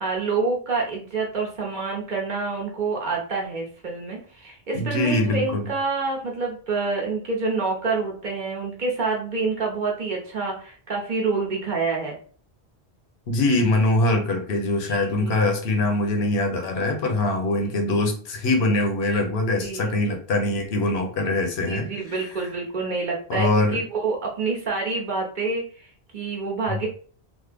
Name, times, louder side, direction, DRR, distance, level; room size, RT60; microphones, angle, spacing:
voice 1, 0.0-12.2 14.8-15.4 17.7-17.8 19.6-19.9 21.3-26.9, right 4 dB, 50° right, -1 dB, 0.9 m, -27 dB
voice 2, 4.7-5.6 13.3-22.3 23.3-23.8 26.7-26.8, left 2 dB, 75° left, 4 dB, 0.9 m, -23 dB
3.2 x 2.1 x 3.3 m, 0.43 s
omnidirectional pair, 1.1 m